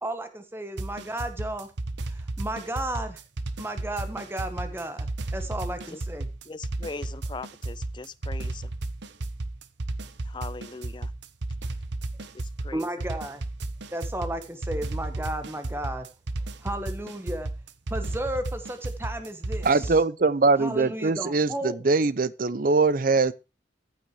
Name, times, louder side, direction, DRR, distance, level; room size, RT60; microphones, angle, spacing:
voice 1, 0.0-1.7 2.1-3.2 3.6-6.3 12.7-13.4 13.9-16.1 16.6-17.5 17.9-20.0 20.6-21.8, right 1 dB, 15° right, 1.2 m, -33 dB
sound 1, 0.8-20.0, right 2 dB, 75° right, 0.9 m, -33 dB
voice 2, 6.5-8.6 10.3-11.1 12.6-12.8, left 3 dB, 25° left, 0.5 m, -39 dB
voice 3, 19.6-23.3, right 3 dB, 50° right, 0.6 m, -22 dB
14.5 x 6.0 x 4.7 m
head